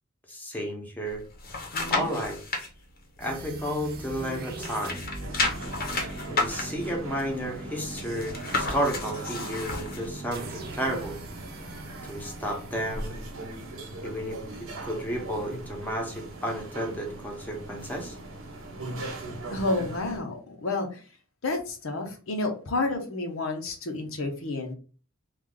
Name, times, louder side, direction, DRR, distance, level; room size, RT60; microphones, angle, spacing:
voice 1, 0.3-1.2 1.9-2.4 3.2-5.0 6.2-11.2 12.1-13.1 14.0-18.2, equal, 10° left, 0 dB, 0.8 m, -32 dB
sound 1, 1.1-2.7 3.2-4.3 4.5-10.1 10.5-10.6, left 3 dB, 45° left, 0.8 m, -32 dB
voice 2, 1.7-2.1 19.5-21.0 21.4-24.7, left 2 dB, 75° left, 3 dB, 0.8 m, -30 dB
sound 2, 3.2-14.2, right 2 dB, 50° right, 0.7 m, -41 dB
sound 3, 5.2-20.2, right 2 dB, 80° right, 1.0 m, -40 dB
3.2 x 2.4 x 3.7 m, 0.36 s
head